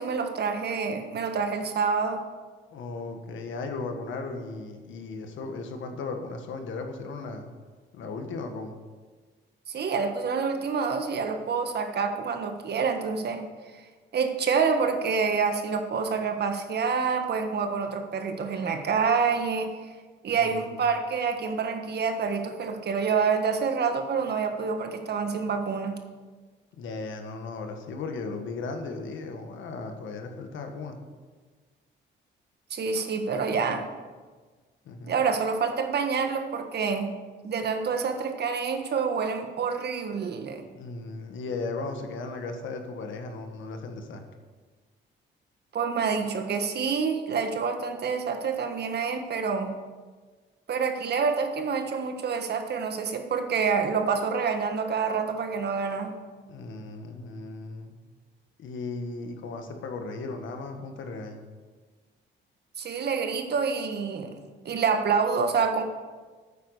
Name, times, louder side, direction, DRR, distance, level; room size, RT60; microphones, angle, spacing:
voice 1, 0.0-2.2 9.7-13.4 14.1-19.7 20.2-25.9 32.7-33.9 35.1-37.1 37.4-40.6 45.7-49.7 50.7-56.1 62.8-64.3 64.6-65.8, right 5 dB, 55° right, 6 dB, 1.5 m, -27 dB
voice 2, 2.7-7.5 7.9-8.8 20.4-20.8 26.7-31.0 34.8-35.1 40.7-44.2 56.5-58.0 58.6-61.4, left 3 dB, 75° left, 5 dB, 1.6 m, -36 dB
9.2 x 8.8 x 6.6 m, 1.4 s
cardioid pair, 90°, 20 cm